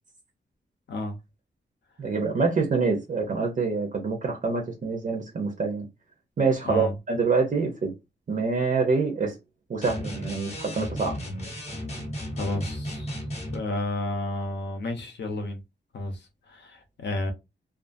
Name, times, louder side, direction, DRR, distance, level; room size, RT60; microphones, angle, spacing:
voice 1, 2.0-5.9 6.4-7.9 8.3-9.4 9.7-11.2, right 4 dB, 45° right, 0.6 m, -26 dB
sound 1, 9.8-13.6, equal, 35° left, 0.8 m, -34 dB
voice 2, 12.3-13.2 13.5-15.6 15.9-17.3, left 2 dB, 65° left, 0.7 m, -31 dB
2.4 x 2.4 x 2.5 m
wide cardioid pair, 170°, 19 cm